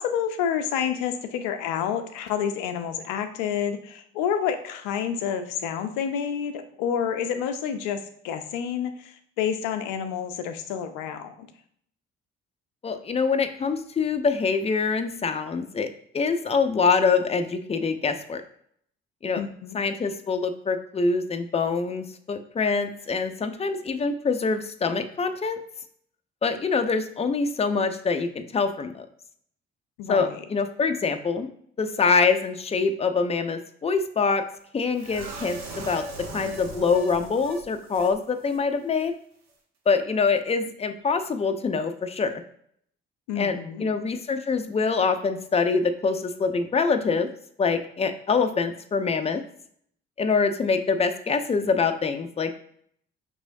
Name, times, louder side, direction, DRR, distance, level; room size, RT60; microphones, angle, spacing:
voice 1, 0.0-11.5 19.4-19.8 30.0-30.4 43.3-43.9, left 8 dB, 75° left, 8 dB, 0.5 m, -29 dB
voice 2, 12.8-15.9 16.1-18.4 19.2-19.4 19.7-25.6 26.4-29.1 30.1-31.5 31.8-34.4 34.7-36.0 36.3-39.1 39.9-42.4 43.4-47.3 47.6-49.4 50.2-52.5, left 5 dB, 20° left, 7 dB, 0.5 m, -25 dB
sound 1, 35.0-38.2 38.4-38.6 38.9-39.1, right 1 dB, 60° right, 0.9 m, -38 dB
5.4 x 3.0 x 2.6 m, 0.65 s
hypercardioid pair, 50°, 30 cm